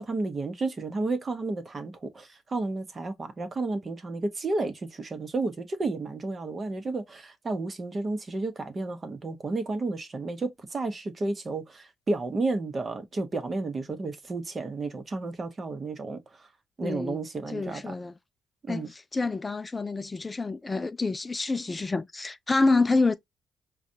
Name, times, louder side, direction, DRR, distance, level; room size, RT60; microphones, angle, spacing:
voice 1, 0.0-16.2 16.8-17.9 18.6-18.9, right 3 dB, 35° right, 0.9 m, -32 dB
voice 2, 16.8-17.2 17.5-18.2 18.7-23.1, left 3 dB, 20° left, 0.3 m, -27 dB
4.9 x 2.3 x 2.7 m
cardioid pair, 90°, 0 cm